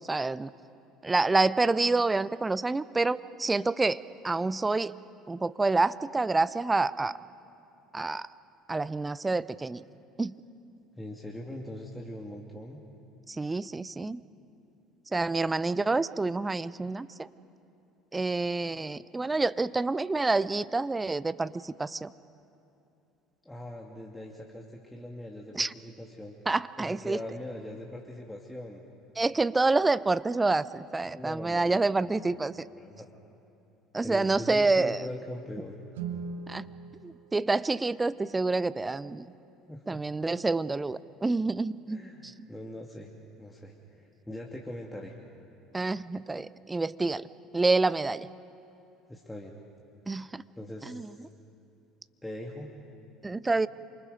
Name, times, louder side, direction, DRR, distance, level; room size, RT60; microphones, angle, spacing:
voice 1, 0.1-0.5 1.0-4.9 5.3-7.1 7.9-8.3 8.7-9.8 10.2-10.3 13.3-14.2 15.1-17.3 18.1-22.1 25.5-25.7 26.5-27.2 29.2-32.6 33.9-35.0 36.5-36.7 37.0-39.3 39.9-42.0 45.7-47.3 47.5-48.3 50.1-50.4 50.9-51.1 53.2-53.7, right 3 dB, 15° right, 17 dB, 0.6 m, -28 dB
voice 2, 11.0-12.8 23.4-26.3 26.8-28.8 31.0-32.4 32.7-33.1 34.0-35.8 39.7-40.0 41.9-43.1 43.4-45.2 49.1-49.5 50.2-51.3 52.2-52.8, left 1 dB, 10° left, -1 dB, 2.5 m, -41 dB
Guitar, 35.9-38.5, right 5 dB, 75° right, 1.4 m, -41 dB
28.0 x 25.0 x 5.1 m, 2.8 s
figure-of-eight pair, 60°, 0 cm